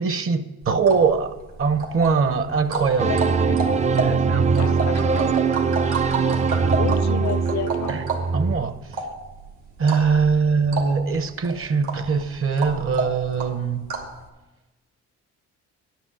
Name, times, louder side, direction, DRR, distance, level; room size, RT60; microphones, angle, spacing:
voice 1, 0.0-1.3 1.6-3.1 3.9-4.7 7.9-8.0 8.3-8.8 9.8-13.9, right 5 dB, 45° right, 0.9 m, -22 dB
sound 1, 0.6-14.2, right 4 dB, 75° right, 2.4 m, -31 dB
voice 2, 2.8-3.6 4.6-5.2 6.8-8.0, left 11 dB, 65° left, 0.5 m, -32 dB
sound 2, 3.0-8.5, right 5 dB, 25° right, 0.4 m, -21 dB
10.5 x 6.0 x 8.8 m
cardioid pair, 90°, 30 cm